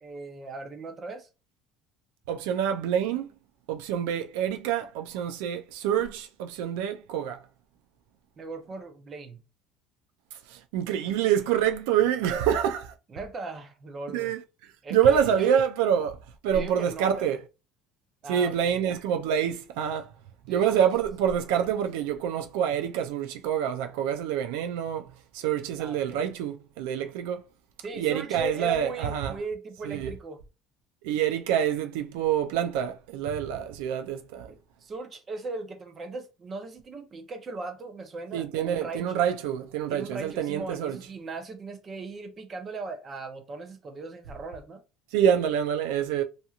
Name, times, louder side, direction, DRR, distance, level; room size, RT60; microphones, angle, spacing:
voice 1, 0.0-1.3 8.4-9.4 13.1-14.3 14.8-15.6 16.5-17.3 18.2-18.8 20.5-20.6 25.8-26.2 27.8-30.4 34.5-39.1 39.9-44.8, right 3 dB, 25° right, 0.6 m, -38 dB
voice 2, 2.3-3.3 3.7-7.4 10.5-12.9 14.1-14.4 14.9-17.4 18.3-20.1 20.5-27.4 28.0-29.3 29.9-30.1 31.0-34.5 38.3-41.0 45.1-46.2, right 9 dB, 85° right, 0.4 m, -26 dB
2.8 x 2.6 x 2.4 m
cardioid pair, 150°, 0 cm